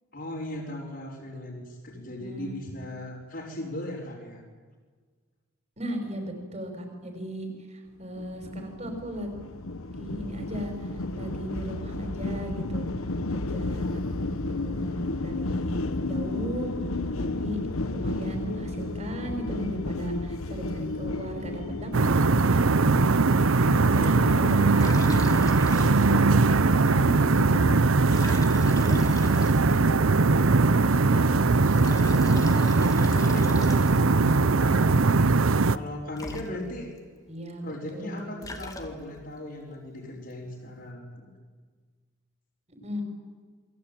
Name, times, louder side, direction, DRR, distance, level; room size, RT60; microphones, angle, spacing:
voice 1, 0.1-4.4 23.6-25.0 25.7-28.3 28.6-30.2 30.8-34.9 35.7-36.9 37.6-41.3, left 1 dB, 50° left, -7 dB, 4.9 m, -38 dB
voice 2, 1.9-2.6 5.8-9.3 9.9-12.9 13.3-14.0 14.5-15.8 16.0-16.7 17.2-17.6 17.9-23.2 24.2-24.5 24.7-25.3 26.9-27.8 30.4-31.1 37.3-38.3 42.8-43.0, equal, 30° right, 4 dB, 5.6 m, -36 dB
sound 1, 8.2-25.6, left 2 dB, 90° left, 1.2 m, -33 dB
sound 2, 21.9-35.8, right 3 dB, 80° right, 0.8 m, -21 dB
Liquid, 24.8-26.3 26.6-26.7 28.0-30.0 31.6-34.2 35.9-36.0 36.2-37.0 38.1-39.3, left 1 dB, 15° left, 2.1 m, -39 dB
28.5 x 22.0 x 9.2 m, 1.5 s
head